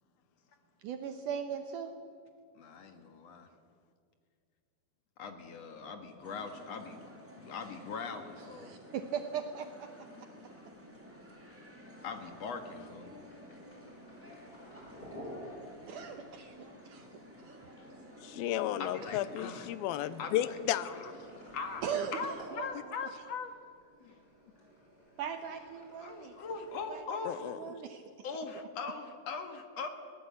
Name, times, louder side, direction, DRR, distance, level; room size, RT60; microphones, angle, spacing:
voice 1, 0.8-1.9 8.4-9.9 10.2-10.3 15.9-16.6 16.8-17.1 17.4-17.6 21.8-22.9 25.2-26.4 26.9-28.3, right 7 dB, 70° right, 6 dB, 2.2 m, -39 dB
voice 2, 2.6-3.5 5.2-7.0 7.4-8.8 12.0-13.1 18.8-19.7 20.2-20.6 20.8-21.1 21.5-21.8 22.1-23.5 24.0-24.2 26.0-27.5 28.2-29.9, left 5 dB, 50° left, 6 dB, 2.4 m, -41 dB
sound 1, 6.2-22.4, equal, 5° right, 2.8 m, -53 dB
sound 2, 10.5-26.9, equal, 25° left, 6.2 m, -54 dB
voice 3, 18.2-20.9 27.2-27.6, left 12 dB, 85° left, 14 dB, 2.6 m, -33 dB
22.0 x 18.5 x 8.3 m, 2.3 s
omnidirectional pair, 4.3 m